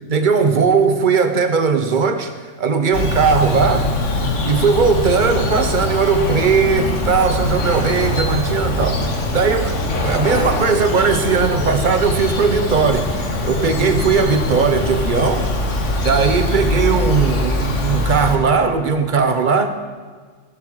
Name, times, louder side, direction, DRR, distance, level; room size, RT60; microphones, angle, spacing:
voice 1, 0.1-3.9 4.4-13.1 13.4-15.5 16.0-19.7, right 5 dB, 45° right, 8 dB, 1.0 m, -18 dB
Bird vocalization bird call bird song, 2.9-18.4, left 1 dB, 85° left, 1.8 m, -22 dB
15.5 x 11.0 x 4.7 m, 1.5 s
omnidirectional pair, 1.2 m